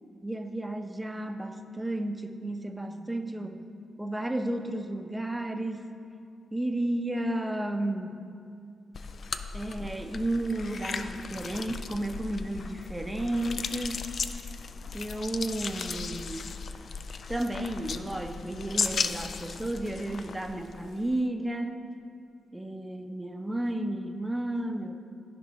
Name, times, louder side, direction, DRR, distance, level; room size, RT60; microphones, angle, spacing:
voice 1, 0.2-3.7 4.0-5.9 6.5-8.2 9.5-14.1 14.9-16.5 17.3-21.9 22.5-25.0, right 1 dB, 10° right, 6 dB, 0.6 m, -32 dB
sound 1, 8.9-21.1, left 5 dB, 55° left, 0.4 m, -36 dB
14.0 x 5.2 x 3.1 m, 2.4 s
cardioid pair, 70°, 0 cm